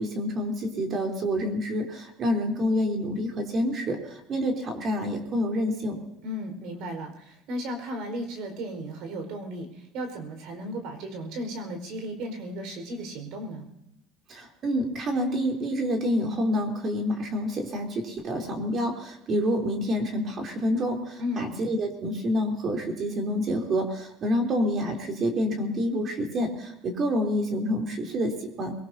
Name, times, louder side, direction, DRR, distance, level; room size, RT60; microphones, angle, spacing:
voice 1, 0.0-6.0 14.3-28.7, equal, 35° right, 2 dB, 3.4 m, -28 dB
voice 2, 6.2-13.6 21.2-21.5, equal, 65° right, 6 dB, 4.8 m, -35 dB
22.0 x 19.5 x 2.8 m, 0.80 s
cardioid pair, 140°, 0 cm